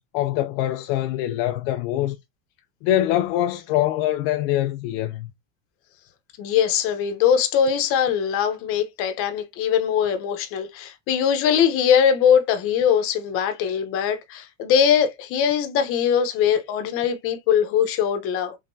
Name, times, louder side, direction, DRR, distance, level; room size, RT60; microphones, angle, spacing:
voice 1, 0.1-2.2 2.8-5.3, left 13 dB, 65° left, 0.5 m, -23 dB
voice 2, 6.4-18.6, left 8 dB, 45° left, 0.9 m, -21 dB
3.7 x 3.4 x 2.6 m
cardioid pair, 165°, 31 cm